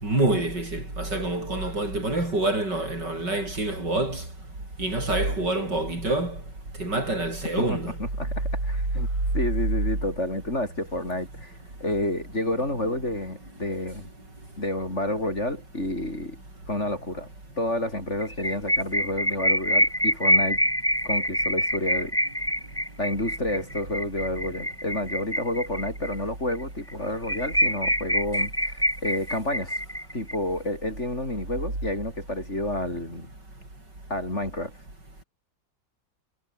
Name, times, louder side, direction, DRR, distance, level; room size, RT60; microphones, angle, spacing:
voice 1, 0.0-4.2 4.8-6.4 6.8-7.9, right 2 dB, 65° right, 8.7 m, -26 dB
voice 2, 7.6-9.1 9.3-11.5 11.8-14.1 14.6-16.4 16.7-17.3 17.6-20.6 21.0-22.2 23.0-29.8 30.1-33.3 34.1-34.7, left 1 dB, 35° left, 7.1 m, -30 dB
sound 1, 18.2-26.1 26.5-26.6 26.9-27.0 27.2-30.3, equal, 5° left, 7.3 m, -25 dB
omnidirectional pair, 2.0 m